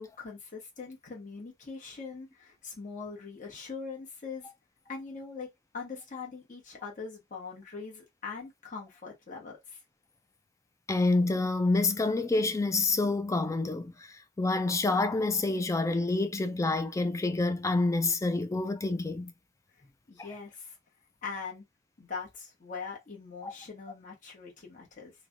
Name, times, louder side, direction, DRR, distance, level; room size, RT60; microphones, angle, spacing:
voice 1, 0.0-4.5 4.9-5.5 5.7-9.8 20.1-20.8 21.2-21.6 22.0-25.1, left 5 dB, 40° left, 1.1 m, -42 dB
voice 2, 10.9-19.3 23.4-23.5, left 3 dB, 15° left, 0.3 m, -28 dB
3.2 x 2.2 x 2.5 m
head